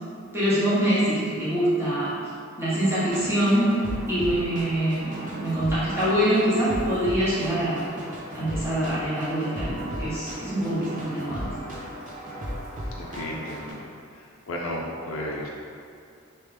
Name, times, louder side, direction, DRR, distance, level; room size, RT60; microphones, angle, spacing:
voice 1, 0.3-2.2 2.6-3.8 4.1-7.9 8.3-11.5, right 1 dB, 10° right, -11 dB, 1.1 m, -24 dB
sound 1, 3.1-13.7, equal, 40° right, 0.6 m, -36 dB
voice 2, 13.0-13.8 14.5-15.5, left 1 dB, 85° left, -2 dB, 0.5 m, -33 dB
3.3 x 3.0 x 3.2 m, 2.4 s
head